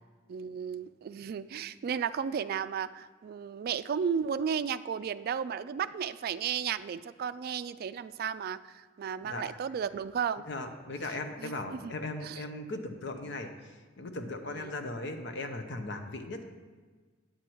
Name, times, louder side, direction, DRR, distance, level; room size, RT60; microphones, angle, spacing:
voice 1, 0.3-10.5 11.4-11.9 12.2-12.4 14.5-14.7, right 7 dB, 50° right, 13 dB, 0.3 m, -34 dB
voice 2, 9.2-9.6 10.5-16.4, left 2 dB, 65° left, 6 dB, 0.9 m, -38 dB
9.1 x 7.9 x 4.5 m, 1.4 s
head